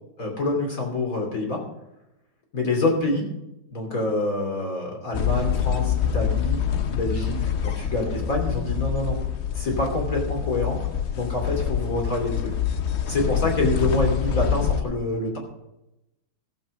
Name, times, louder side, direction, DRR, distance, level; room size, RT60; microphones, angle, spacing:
voice 1, 0.2-1.6 2.5-3.3 3.7-6.6 6.9-9.2 9.5-10.8 11.1-12.5 13.1-15.4, left 2 dB, 45° left, 0 dB, 3.4 m, -26 dB
sound 1, 5.1-14.8, left 8 dB, 60° left, 0.7 m, -26 dB
15.0 x 7.6 x 5.0 m, 0.89 s
omnidirectional pair, 2.1 m